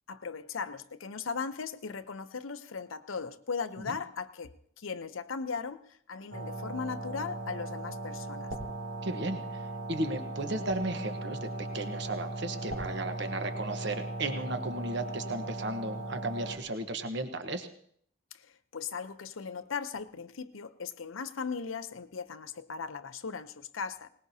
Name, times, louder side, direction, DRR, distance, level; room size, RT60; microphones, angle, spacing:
voice 1, 0.1-8.5 18.3-24.1, left 5 dB, 80° left, 0.7 m, -38 dB
sound 1, 6.3-16.6, right 2 dB, 80° right, 2.9 m, -38 dB
voice 2, 9.0-17.7, right 2 dB, 60° right, 1.1 m, -35 dB
20.5 x 19.5 x 2.8 m
head